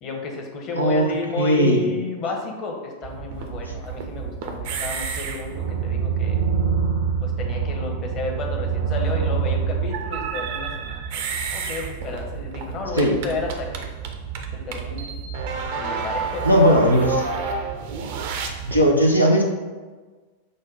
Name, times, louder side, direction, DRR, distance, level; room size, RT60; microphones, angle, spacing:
voice 1, 0.0-6.4 7.2-11.3 11.5-13.9 14.5-15.1 15.8-16.7 17.0-17.1, left 3 dB, 35° left, 1 dB, 0.8 m, -32 dB
voice 2, 0.8-1.1 1.4-1.9 13.0-13.2 16.4-17.2 18.7-19.4, equal, 90° left, 0 dB, 0.5 m, -17 dB
sound 1, 3.0-18.9, right 6 dB, 50° right, 0.5 m, -28 dB
6.2 x 2.2 x 3.9 m, 1.3 s
figure-of-eight pair, 90°, 0 cm